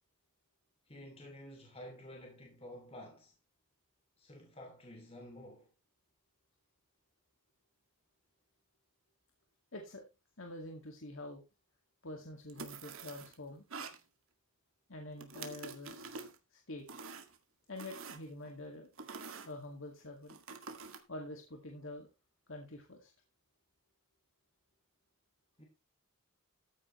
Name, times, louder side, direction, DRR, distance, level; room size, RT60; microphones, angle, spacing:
voice 1, 0.9-3.3 4.2-5.7 25.6-25.7, left 1 dB, 25° left, 2.9 m, -51 dB
voice 2, 9.7-10.0 10.4-11.4 12.0-13.7 14.9-16.0 16.5-16.8 17.7-18.9 19.5-20.4 21.1-22.1 22.5-23.1, left 1 dB, 65° left, 2.2 m, -46 dB
sound 1, 12.5-13.3 13.7-14.0 15.2-16.4 16.9-17.4 17.8-18.5 19.0-19.5 20.3-21.0, right 4 dB, 70° right, 2.1 m, -46 dB
14.5 x 9.4 x 3.2 m
head